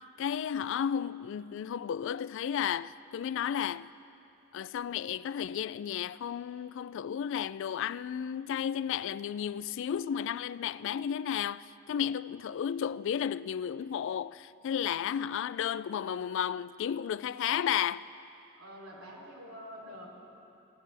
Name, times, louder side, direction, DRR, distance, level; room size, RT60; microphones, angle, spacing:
voice 1, 0.2-3.9 4.5-18.0, left 8 dB, 65° left, 0.3 m, -33 dB
voice 2, 18.5-20.2, equal, 90° right, 3.3 m, -46 dB
23.0 x 16.5 x 3.4 m
head